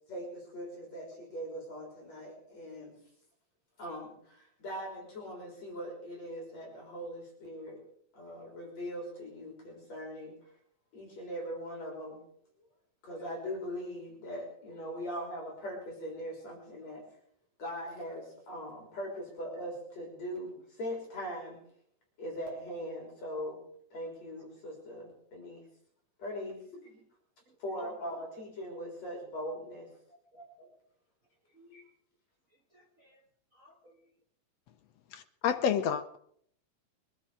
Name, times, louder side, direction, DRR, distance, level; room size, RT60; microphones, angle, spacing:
voice 1, 0.1-2.9 3.8-7.8 8.1-10.5 10.9-12.2 13.0-17.0 17.6-21.6 22.2-23.6 23.9-25.7 26.2-27.0 27.6-29.9 30.3-30.7 31.7-31.8, equal, 55° left, 5.1 m, -41 dB
voice 2, 30.1-30.4 31.5-31.9 32.7-34.1, left 2 dB, 45° right, 1.0 m, -62 dB
voice 3, 35.1-36.2, left 8 dB, 75° left, 1.6 m, -29 dB
22.5 x 12.0 x 5.0 m
omnidirectional pair, 3.7 m